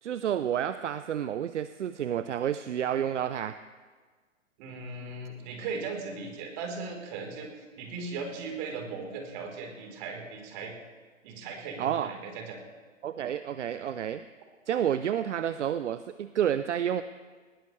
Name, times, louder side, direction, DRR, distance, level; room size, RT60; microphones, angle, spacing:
voice 1, 0.0-3.6 11.8-12.1 13.0-14.2 14.7-17.0, right 9 dB, 65° right, 12 dB, 0.7 m, -30 dB
voice 2, 4.6-10.7 11.2-12.6, right 4 dB, 35° right, 2 dB, 3.8 m, -38 dB
20.5 x 20.0 x 3.2 m, 1.5 s
figure-of-eight pair, 125°, 39 cm